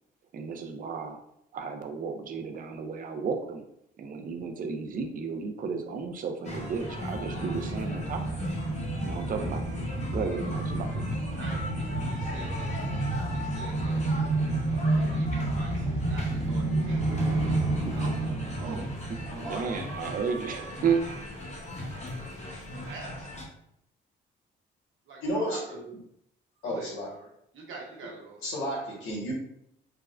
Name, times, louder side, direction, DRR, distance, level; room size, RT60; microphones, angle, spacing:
voice 1, 0.3-1.2 1.5-3.6 4.0-8.5 9.0-9.7 10.1-11.2 18.6-18.9 19.3-21.0, right 5 dB, 45° right, 5 dB, 0.5 m, -33 dB
sound 1, 6.4-23.4, left 1 dB, 35° left, 0.8 m, -38 dB
sound 2, 7.0-20.2 20.5-20.6, right 2 dB, 25° right, 0.9 m, -30 dB
voice 2, 11.4-12.8 13.2-14.0 14.9-17.3 17.9-19.7 22.5-23.3 25.1-25.8 26.6-28.4, right 3 dB, 75° right, -2 dB, 0.9 m, -45 dB
voice 3, 25.2-25.8 26.6-27.1 28.4-29.3, equal, 90° left, -4 dB, 1.2 m, -32 dB
3.4 x 2.0 x 2.4 m, 0.74 s
cardioid pair, 90°, 20 cm